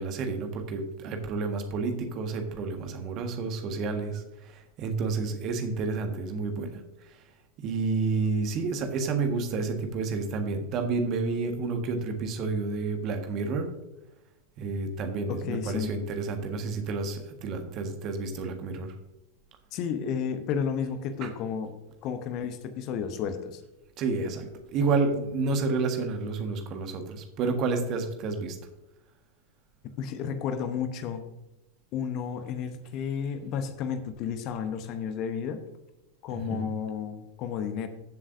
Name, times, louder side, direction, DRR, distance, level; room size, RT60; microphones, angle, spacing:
voice 1, 0.0-6.8 7.6-13.7 14.6-18.9 21.2-21.3 24.0-28.6 36.3-36.6, right 4 dB, 35° right, 5 dB, 1.5 m, -30 dB
voice 2, 15.3-15.9 19.7-21.7 22.0-23.6 30.0-31.2 31.9-35.6 36.2-37.9, left 7 dB, 40° left, 9 dB, 0.9 m, -32 dB
14.5 x 7.4 x 2.6 m, 0.98 s
figure-of-eight pair, 90°, 0 cm